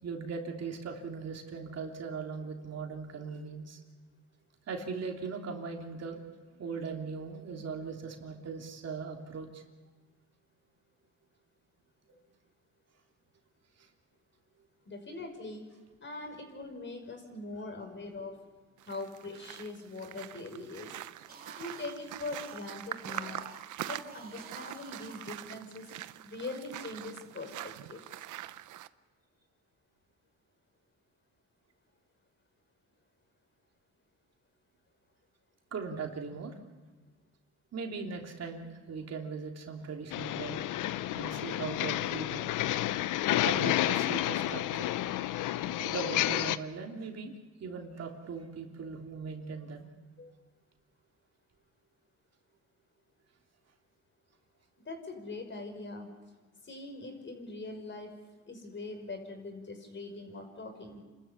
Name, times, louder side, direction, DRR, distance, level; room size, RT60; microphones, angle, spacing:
voice 1, 0.0-3.8 4.7-6.2 6.6-9.6 13.8-13.9 35.7-36.6 37.7-40.6 41.1-42.5 43.4-44.9 45.8-49.9, right 5 dB, 55° right, 2 dB, 3.3 m, -39 dB
voice 2, 14.9-15.7 16.0-18.3 18.9-21.0 21.6-23.5 23.8-25.9 26.2-28.1 50.2-50.3 54.8-56.1 56.6-58.1 58.5-61.0, left 2 dB, 40° left, 4 dB, 5.7 m, -42 dB
sound 1, 18.8-28.9, right 13 dB, 80° right, 0.8 m, -44 dB
sound 2, 21.1-25.9, right 4 dB, 30° right, 3.3 m, -52 dB
sound 3, 40.1-46.6, left 14 dB, 85° left, 0.8 m, -30 dB
29.0 x 13.5 x 8.4 m, 1.3 s
cardioid pair, 90°, 30 cm